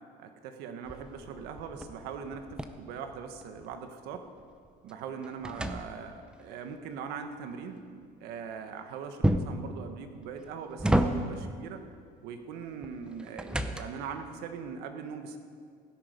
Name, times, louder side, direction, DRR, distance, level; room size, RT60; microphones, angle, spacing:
voice 1, 0.2-4.2 4.8-7.8 8.2-11.8 12.2-15.4, right 6 dB, 75° right, 7 dB, 1.3 m, -41 dB
sound 1, 0.8-3.7 4.1-6.4 9.2-9.7 10.3-11.5 12.8-14.2, right 1 dB, 5° right, 0.7 m, -31 dB
16.5 x 10.5 x 5.3 m, 2.1 s
cardioid pair, 125°, 16 cm